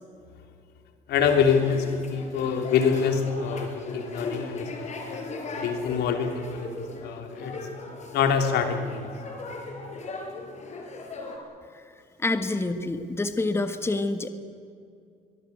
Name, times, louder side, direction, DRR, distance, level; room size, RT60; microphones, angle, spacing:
voice 1, 1.1-5.0 5.6-6.7 7.0-7.6 8.1-9.1, left 6 dB, 80° left, 5 dB, 3.5 m, -25 dB
sound 1, 1.2-11.4, left 3 dB, 45° left, 5.5 m, -38 dB
voice 2, 12.2-14.3, left 2 dB, 15° left, 9 dB, 1.5 m, -27 dB
23.0 x 21.5 x 8.4 m, 2.4 s
cardioid pair, 110°, 17 cm